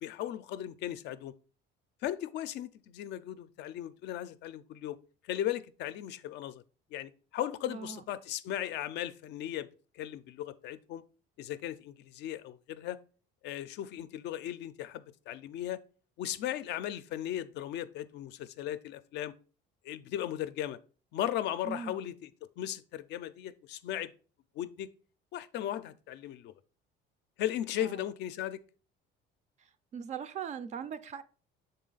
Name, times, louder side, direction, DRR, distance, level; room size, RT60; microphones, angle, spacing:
voice 1, 0.0-1.3 2.0-5.0 5.2-6.6 6.9-9.7 9.9-11.0 11.4-13.0 13.4-15.8 16.2-19.3 19.8-20.8 21.1-24.1 24.6-24.9 25.3-26.5 27.4-28.6, left 12 dB, 60° left, 0.4 m, -37 dB
voice 2, 7.7-8.0 21.7-22.0 27.8-28.0 29.9-31.2, right 7 dB, 35° right, 0.3 m, -39 dB
6.4 x 3.9 x 3.9 m
cardioid pair, 150°, 20 cm